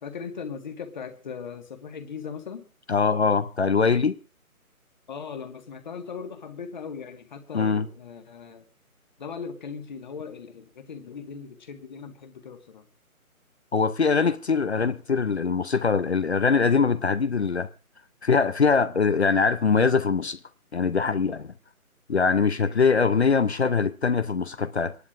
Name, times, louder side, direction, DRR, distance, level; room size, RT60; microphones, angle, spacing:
voice 1, 0.0-2.7 5.1-8.6 9.2-12.8 22.5-22.8, left 6 dB, 30° left, 1.8 m, -39 dB
voice 2, 2.9-4.2 7.5-7.9 13.7-17.7 18.2-20.4 20.7-21.5 22.1-25.0, left 5 dB, 50° left, 0.8 m, -22 dB
28.5 x 11.5 x 2.6 m
figure-of-eight pair, 155°, 44 cm